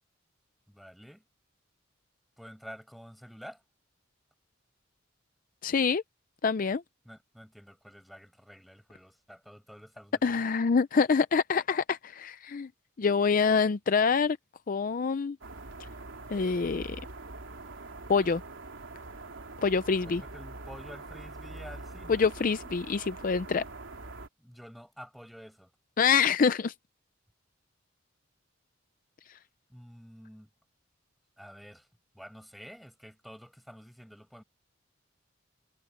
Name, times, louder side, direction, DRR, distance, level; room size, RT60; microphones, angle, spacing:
voice 1, 0.7-1.2 2.4-3.6 7.0-10.4 20.0-22.3 24.4-25.7 29.7-30.5 31.4-31.9 32.1-34.4, equal, ahead, 5.3 m, -49 dB
voice 2, 5.6-6.0 6.4-6.8 10.2-12.7 13.0-14.4 14.7-15.4 16.3-17.0 18.1-18.4 19.6-20.2 22.1-23.6 26.0-26.7, left 5 dB, 45° left, 0.4 m, -26 dB
sound 1, 15.4-24.3, right 2 dB, 80° right, 2.8 m, -44 dB
head